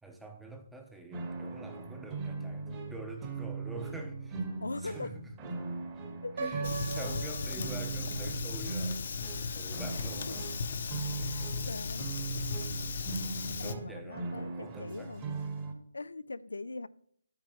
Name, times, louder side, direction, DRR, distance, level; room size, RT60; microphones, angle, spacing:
voice 1, 0.0-4.4 4.8-5.3 6.4-10.4 11.1-11.8 13.5-15.1, right 2 dB, 5° right, 0.8 m, -46 dB
sound 1, 1.1-15.7, right 4 dB, 20° right, 1.5 m, -39 dB
voice 2, 4.6-5.2 6.2-6.7 10.3-10.4 11.2-12.1 13.6-15.3 15.9-16.9, left 3 dB, 85° left, 0.5 m, -41 dB
Piano, 6.4-8.3, right 4 dB, 50° right, 1.4 m, -40 dB
Fire, 6.6-13.7, left 5 dB, 50° left, 0.8 m, -37 dB
9.6 x 8.9 x 3.1 m
hypercardioid pair, 160°, 0 cm